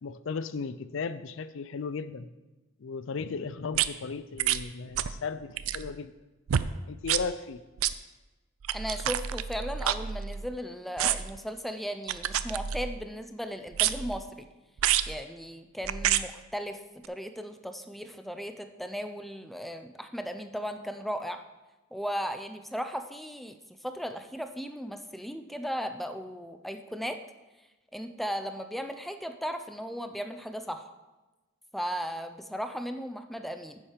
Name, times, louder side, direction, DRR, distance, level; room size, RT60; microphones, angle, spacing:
voice 1, 0.0-2.3 2.8-6.1 6.9-7.6, left 5 dB, 65° left, 14 dB, 0.4 m, -36 dB
sound 1, 3.7-3.9 4.4-4.6 4.9-5.2 5.5-5.9 6.5-6.7 7.0-7.2 7.8-7.9 8.6-10.5 11.0-11.4 12.1-13.0 13.7-14.2 14.8-15.1 15.8-16.2 17.0-17.1, right 10 dB, 90° right, 0.4 m, -28 dB
voice 2, 8.7-14.5 15.1-16.8 17.1-21.4 21.9-23.6 23.8-27.2 27.9-30.9 31.7-33.8, equal, ahead, 7 dB, 0.5 m, -36 dB
9.3 x 7.3 x 5.0 m, 1.1 s
head